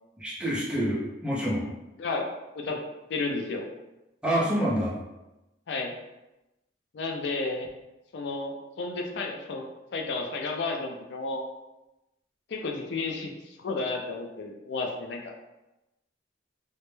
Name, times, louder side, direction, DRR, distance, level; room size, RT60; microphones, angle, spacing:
voice 1, 0.2-1.7 4.2-5.0, equal, 5° right, -6 dB, 0.5 m, -27 dB
voice 2, 3.1-3.7 5.7-5.9 6.9-7.7 8.1-9.7 9.9-11.4 12.5-13.3 13.6-15.3, left 3 dB, 65° left, 2 dB, 0.4 m, -32 dB
2.1 x 2.1 x 3.0 m, 0.97 s
head